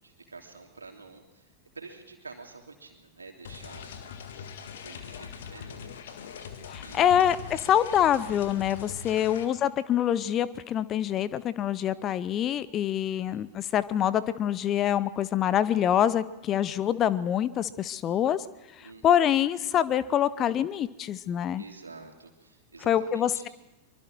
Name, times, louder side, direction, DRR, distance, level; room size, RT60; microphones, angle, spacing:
voice 1, 0.0-3.9 4.4-4.5 4.8-5.9 6.4-7.2 9.0-9.6 13.0-13.4 18.8-19.2 21.6-23.5, right 4 dB, 75° right, 3 dB, 3.0 m, -48 dB
sound 1, 3.4-9.4, left 7 dB, 60° left, 1.7 m, -42 dB
voice 2, 6.7-7.4 7.7-18.4 19.0-21.6 22.9-23.5, left 10 dB, 30° left, 17 dB, 0.8 m, -25 dB
24.0 x 23.5 x 4.7 m, 0.99 s
figure-of-eight pair, 90°, 0 cm